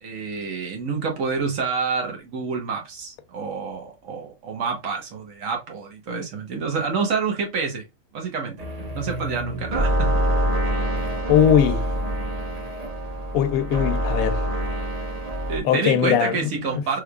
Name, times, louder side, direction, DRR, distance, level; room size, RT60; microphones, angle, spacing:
voice 1, 0.0-7.8 8.1-10.4 15.5-17.0, right 5 dB, 70° right, 1.4 m, -28 dB
sound 1, 8.6-15.6, equal, 30° right, 0.9 m, -25 dB
voice 2, 11.3-11.9 13.3-14.4 15.6-16.4 16.7-16.8, left 9 dB, 85° left, 1.0 m, -19 dB
3.6 x 3.3 x 2.2 m
omnidirectional pair, 1.5 m